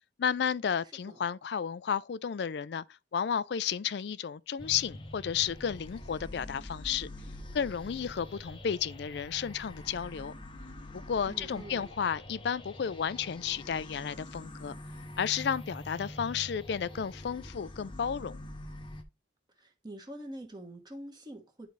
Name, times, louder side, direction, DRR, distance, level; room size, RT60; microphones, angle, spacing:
voice 1, 0.2-2.8 3.1-7.1 7.5-10.3 10.9-14.8 15.2-18.4, left 7 dB, 60° left, 0.4 m, -32 dB
voice 2, 0.8-1.2 11.3-11.9 19.5-21.7, right 1 dB, 25° right, 1.2 m, -45 dB
sound 1, 4.6-19.0, left 1 dB, 25° left, 0.8 m, -45 dB
10.5 x 3.9 x 3.1 m
head